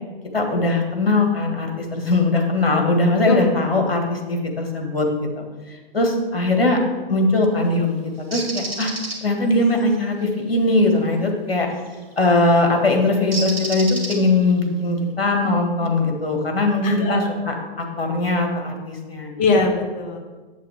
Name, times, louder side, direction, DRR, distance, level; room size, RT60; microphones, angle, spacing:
voice 1, 0.3-5.1 5.4-5.5 5.9-6.8 7.1-8.9 9.2-11.7 12.2-19.3, left 2 dB, 75° left, 2 dB, 1.9 m, -20 dB
Bird, 8.3-9.2 11.8-12.0 13.3-14.5, right 2 dB, 80° right, 1.9 m, -29 dB
voice 2, 16.8-17.3 19.4-20.2, left 3 dB, 25° left, 3 dB, 1.1 m, -21 dB
7.5 x 7.4 x 3.6 m, 1.3 s
figure-of-eight pair, 115°, 30 cm